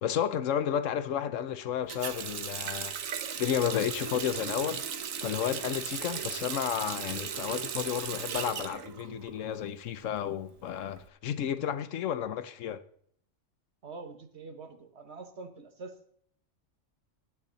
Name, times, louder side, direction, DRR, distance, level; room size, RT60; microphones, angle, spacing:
voice 1, 0.0-3.0 3.4-4.8 5.2-12.8, left 9 dB, 75° left, 1.1 m, -32 dB
Water tap faucet, 1.9-9.6 9.9-11.0, right 7 dB, 90° right, 1.3 m, -37 dB
voice 2, 13.8-16.2, right 3 dB, 60° right, 1.5 m, -45 dB
15.5 x 9.2 x 4.0 m
omnidirectional pair, 1.3 m